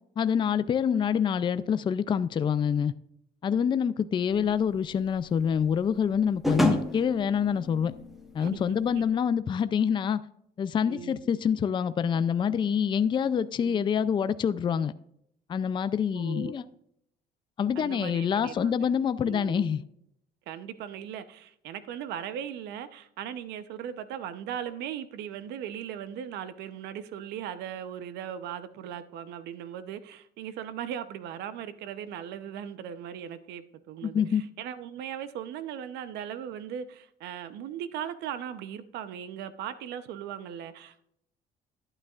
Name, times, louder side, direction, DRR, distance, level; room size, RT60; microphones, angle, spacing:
voice 1, 0.2-2.9 3.4-7.9 8.3-10.2 10.6-14.9 15.5-16.6 17.6-19.8 34.0-34.4, left 7 dB, 30° left, 0.4 m, -26 dB
voice 2, 4.3-4.7 8.4-9.0 10.8-11.2 13.6-13.9 16.1-16.6 17.7-18.9 19.2-19.8 20.5-41.1, right 9 dB, 85° right, 0.7 m, -38 dB
sound 1, 4.4-9.1, equal, ahead, 1.3 m, -31 dB
12.0 x 8.8 x 2.4 m
cardioid pair, 110°, 17 cm